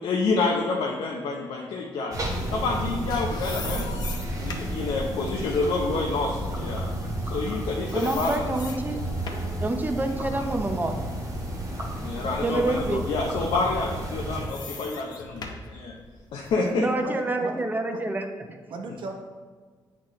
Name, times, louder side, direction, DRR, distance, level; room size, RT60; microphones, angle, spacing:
voice 1, 0.0-2.2 2.5-3.9 4.3-6.9 7.3-8.4 12.0-15.9 16.3-16.9, left 3 dB, 85° left, -1 dB, 0.7 m, -28 dB
sound 1, 2.1-14.5, right 1 dB, 40° right, 1.3 m, -32 dB
sound 2, 3.1-7.6 7.9-9.6 10.1-12.0 12.5-12.6 13.7-16.7, left 4 dB, 55° left, 0.8 m, -42 dB
voice 2, 7.9-9.0 9.6-11.0 12.4-13.0 16.8-18.6, right 2 dB, 20° right, 5 dB, 0.7 m, -27 dB
voice 3, 16.5-17.7 17.9-18.0 18.7-19.1, right 3 dB, 70° right, 3 dB, 0.9 m, -37 dB
8.7 x 4.2 x 3.2 m, 1.5 s
cardioid pair, 105°, 9 cm